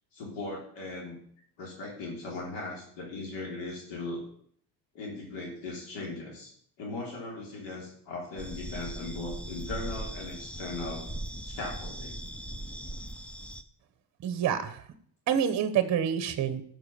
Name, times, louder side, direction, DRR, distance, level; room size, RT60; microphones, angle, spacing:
voice 1, 0.1-1.2 1.6-4.2 4.9-6.5 6.8-11.0 11.4-12.2, left 2 dB, 75° left, -2 dB, 3.3 m, -38 dB
sound 1, 8.4-13.6, right 1 dB, 5° left, 0.3 m, -39 dB
voice 2, 14.2-14.8 15.3-16.6, right 9 dB, 40° right, 11 dB, 0.9 m, -27 dB
12.5 x 6.1 x 6.8 m, 0.62 s
cardioid pair, 150°, 44 cm